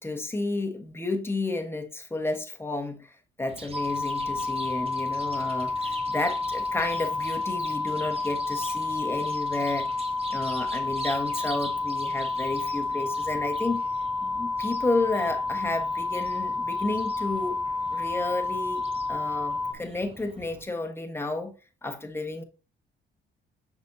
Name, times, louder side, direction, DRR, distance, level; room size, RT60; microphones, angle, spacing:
voice 1, 0.0-9.9 10.3-13.8 14.2-17.6 17.9-18.8 19.1-21.5 21.8-22.4, left 2 dB, 10° left, 1.3 m, -31 dB
Chirp tweet, 3.5-20.6, right 2 dB, 30° right, 1.3 m, -45 dB
sound 1, 3.7-19.7, left 3 dB, 5° right, 0.5 m, -30 dB
6.2 x 5.9 x 2.8 m
cardioid pair, 90°, 20 cm